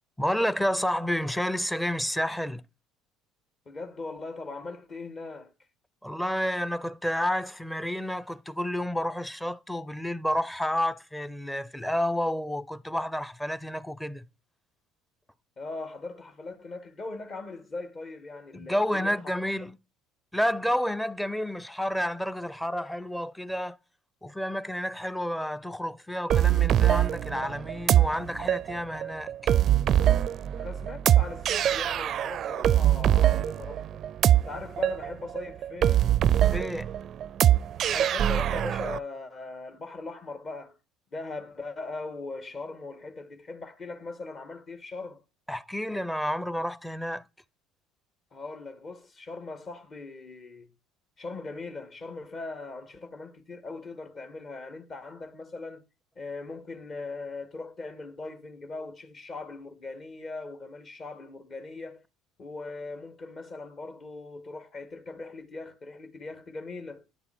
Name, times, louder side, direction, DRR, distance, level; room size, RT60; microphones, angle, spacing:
voice 1, 0.2-2.6 6.0-14.2 18.5-19.7 20.3-23.8 24.2-29.5 36.4-36.9 45.5-47.2, equal, 5° left, 0.8 m, -30 dB
voice 2, 3.7-5.5 15.6-19.2 30.6-34.0 34.3-36.0 37.8-40.8 41.1-45.2 48.3-50.7 51.2-55.8 56.2-62.0 62.4-67.0, left 3 dB, 40° left, 2.1 m, -40 dB
sound 1, 26.3-39.0, right 11 dB, 50° right, 0.4 m, -23 dB
10.5 x 6.9 x 4.4 m
hypercardioid pair, 60°, 0 cm